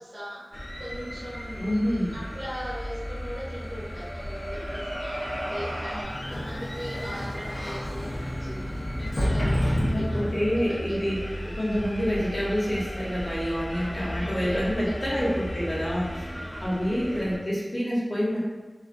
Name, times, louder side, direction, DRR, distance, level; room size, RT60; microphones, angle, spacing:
voice 1, 0.0-8.6 8.9-11.0 13.7-15.1 16.3-16.8, equal, 60° right, -9 dB, 0.9 m, -40 dB
sound 1, 0.5-17.4, equal, 20° left, 0.5 m, -36 dB
voice 2, 1.6-2.2 5.9-6.0 9.9-18.4, equal, 35° left, -7 dB, 0.9 m, -28 dB
sound 2, 3.8-6.0, right 1 dB, 40° right, 0.3 m, -35 dB
Sliding door, 6.0-10.7, equal, 80° left, 0.5 m, -29 dB
2.4 x 2.2 x 2.5 m, 1.2 s
wide cardioid pair, 55°, 0 cm